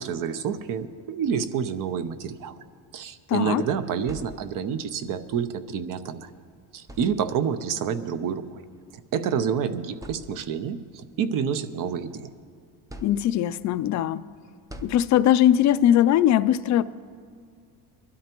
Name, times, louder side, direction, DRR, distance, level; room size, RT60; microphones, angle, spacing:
voice 1, 0.0-2.5 2.9-6.3 6.7-8.6 9.1-12.3, right 7 dB, 50° right, 0.7 m, -28 dB
voice 2, 3.3-3.6 13.0-14.2 14.8-16.8, left 11 dB, 45° left, 0.4 m, -20 dB
sound 1, 4.1-4.9 6.1-6.3 6.8-7.6 8.7-8.9 9.4-9.5 9.9-10.8 11.3-12.3 12.9-13.7 14.7-15.6, equal, 10° right, 0.5 m, -45 dB
22.0 x 12.5 x 3.0 m
cardioid pair, 125°, 41 cm